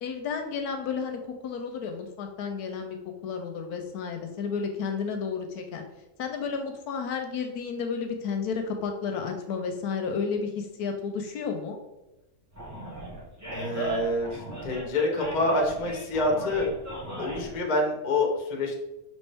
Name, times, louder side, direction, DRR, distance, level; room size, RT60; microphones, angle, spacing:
voice 1, 0.0-3.0 3.2-5.8 6.2-11.8, left 5 dB, 70° left, 4 dB, 1.0 m, -32 dB
Animal, 12.5-17.6, right 1 dB, 15° right, 0.7 m, -37 dB
voice 2, 13.5-16.7 17.2-18.8, left 2 dB, 40° left, 1 dB, 0.6 m, -27 dB
5.3 x 2.9 x 3.3 m, 0.98 s
omnidirectional pair, 1.8 m